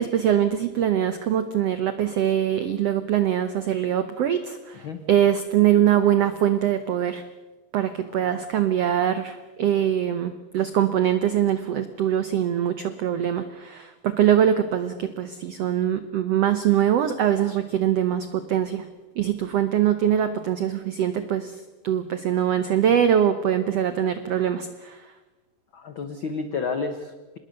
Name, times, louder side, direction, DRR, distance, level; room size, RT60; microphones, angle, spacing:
voice 1, 0.0-7.2 7.7-18.9 19.2-21.6 21.8-25.0, right 10 dB, 90° right, 11 dB, 1.3 m, -23 dB
voice 2, 25.7-27.4, left 4 dB, 85° left, 8 dB, 1.1 m, -31 dB
26.0 x 20.5 x 6.7 m, 1.2 s
omnidirectional pair, 4.2 m